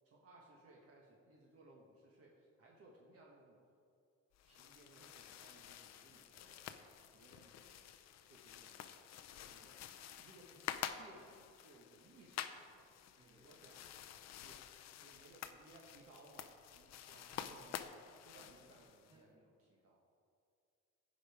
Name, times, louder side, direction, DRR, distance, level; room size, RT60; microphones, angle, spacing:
voice 1, 0.0-3.6 4.4-6.8 7.1-7.8 8.2-9.1 9.5-9.8 10.2-10.6 11.0-12.8 13.4-13.8 14.4-14.6 14.9-17.9 18.2-20.0, right 2 dB, 55° right, -2 dB, 1.2 m, -63 dB
sound 1, 4.3-19.2, left 10 dB, 65° left, 0.5 m, -50 dB
voice 2, 9.4-10.2 12.3-12.9 13.2-13.7 17.1-18.7 19.1-19.3, right 2 dB, 20° right, -4 dB, 2.0 m, -69 dB
15.5 x 5.2 x 4.8 m, 2.4 s
cardioid pair, 175°, 29 cm